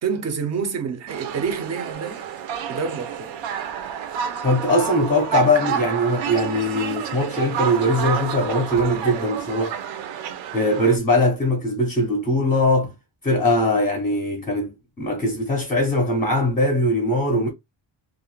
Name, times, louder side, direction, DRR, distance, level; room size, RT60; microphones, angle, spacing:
voice 1, 0.0-2.2 2.7-3.3, right 6 dB, 40° right, 0.4 m, -28 dB
sound 1, 1.1-11.0, right 8 dB, 80° right, 0.6 m, -29 dB
voice 2, 4.4-9.8 10.5-12.9 13.2-17.5, left 1 dB, 20° left, 0.5 m, -21 dB
2.3 x 2.0 x 3.0 m
cardioid pair, 170°, 45 cm